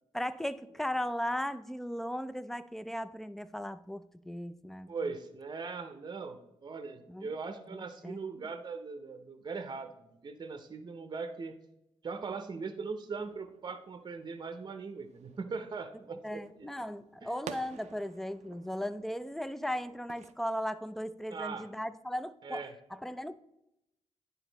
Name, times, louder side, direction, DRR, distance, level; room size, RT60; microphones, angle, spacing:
voice 1, 0.1-5.1 7.1-7.3 7.7-8.2 16.2-22.6 22.9-23.4, equal, ahead, 14 dB, 0.3 m, -37 dB
voice 2, 4.9-11.5 12.0-16.8 17.2-17.3 21.3-21.7 22.4-22.7, right 4 dB, 40° right, 9 dB, 0.7 m, -40 dB
sound 1, 13.2-20.3, right 9 dB, 80° right, 0.4 m, -52 dB
10.0 x 4.1 x 3.9 m, 0.85 s
cardioid pair, 90°, 12 cm